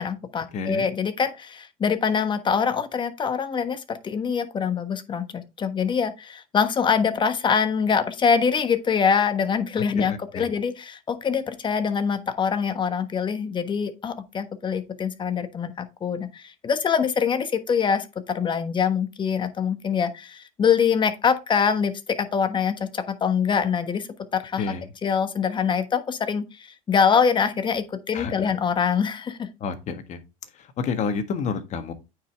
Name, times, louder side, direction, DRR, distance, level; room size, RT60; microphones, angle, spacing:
voice 1, 0.0-24.7 25.0-29.5, left 6 dB, 30° left, 1.3 m, -24 dB
voice 2, 0.5-0.9 9.9-10.5 24.6-24.9 28.1-28.5 29.6-30.2 30.6-31.9, left 5 dB, 45° left, 1.6 m, -30 dB
8.9 x 5.2 x 3.5 m
supercardioid pair, 100°, 17 cm